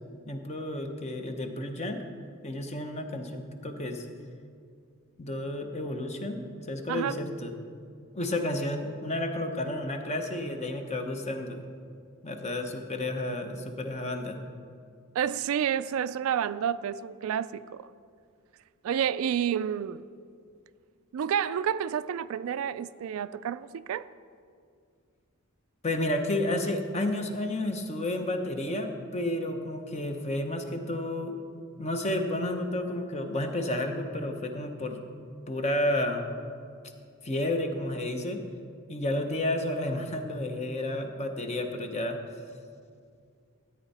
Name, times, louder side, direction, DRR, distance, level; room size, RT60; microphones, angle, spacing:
voice 1, 0.3-2.0 2.4-4.1 5.2-6.4 6.7-7.5 8.1-11.7 12.2-14.4 25.8-31.4 31.7-35.0 35.5-36.2 37.2-38.4 38.9-42.2, left 1 dB, 30° left, 0.9 m, -31 dB
voice 2, 15.1-17.9 18.8-20.0 21.1-24.1, right 8 dB, 70° right, 0.3 m, -29 dB
14.0 x 8.9 x 4.2 m
head